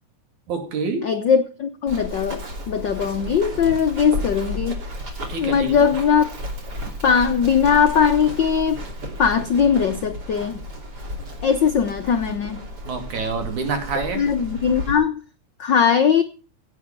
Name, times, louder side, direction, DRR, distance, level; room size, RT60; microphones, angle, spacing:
voice 1, 0.5-1.1 5.3-5.9 12.9-14.2, right 4 dB, 75° right, 6 dB, 3.8 m, -27 dB
voice 2, 1.0-4.8 5.4-6.3 7.0-8.8 9.2-10.6 11.4-12.6 14.2-15.2 15.6-16.2, left 7 dB, 90° left, 8 dB, 1.0 m, -20 dB
Run, 1.9-14.9, equal, 35° right, 3.0 m, -33 dB
16.5 x 8.0 x 5.3 m, 0.35 s
omnidirectional pair, 3.4 m